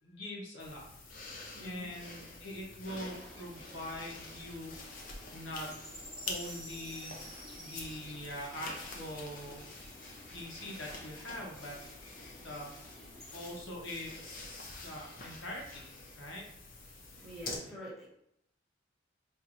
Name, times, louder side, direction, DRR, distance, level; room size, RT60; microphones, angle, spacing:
voice 1, 0.0-0.8 1.6-4.7 5.3-5.8 6.2-7.1 7.5-9.6 10.3-11.8 12.4-12.7 13.3-16.4, left 1 dB, 80° left, -2 dB, 1.0 m, -43 dB
sound 1, 0.6-17.6, left 3 dB, 45° left, 0.6 m, -47 dB
voice 2, 1.5-1.9 17.1-18.1, equal, ahead, -8 dB, 1.2 m, -46 dB
sound 2, 3.0-13.6, equal, 15° left, 1.3 m, -52 dB
4.4 x 2.7 x 2.5 m, 0.75 s
head